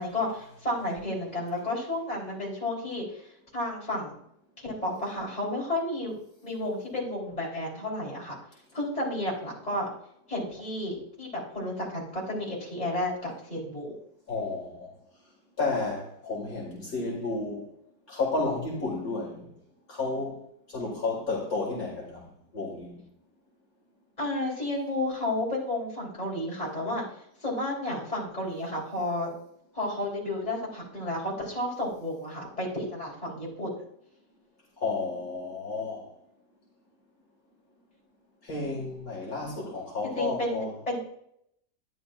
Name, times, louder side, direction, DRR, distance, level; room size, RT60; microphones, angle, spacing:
voice 1, 0.0-3.2 3.5-4.2 4.6-6.2 6.4-8.4 8.7-9.9 10.3-14.0 24.2-27.0 27.4-29.3 29.7-33.7 40.0-41.0, left 1 dB, 20° left, -4 dB, 3.8 m, -32 dB
voice 2, 14.3-14.9 15.6-17.7 18.1-19.5 19.9-20.4 20.7-22.3 22.5-23.0 34.8-36.0 38.4-40.7, left 3 dB, 55° left, -3 dB, 2.5 m, -32 dB
12.5 x 10.5 x 2.5 m, 0.73 s
omnidirectional pair, 1.8 m